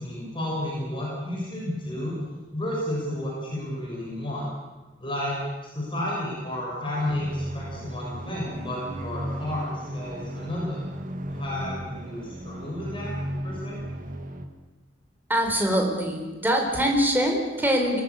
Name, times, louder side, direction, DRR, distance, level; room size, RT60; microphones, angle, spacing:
voice 1, 0.0-2.2 2.5-4.5 5.0-10.8 11.3-13.1 13.4-13.8, left 1 dB, 25° left, -3 dB, 6.6 m, -32 dB
sound 1, 6.9-14.5, equal, 45° right, 1.9 m, -35 dB
voice 2, 15.3-18.0, equal, 10° right, 2 dB, 4.5 m, -23 dB
26.0 x 17.5 x 8.5 m, 1.2 s
head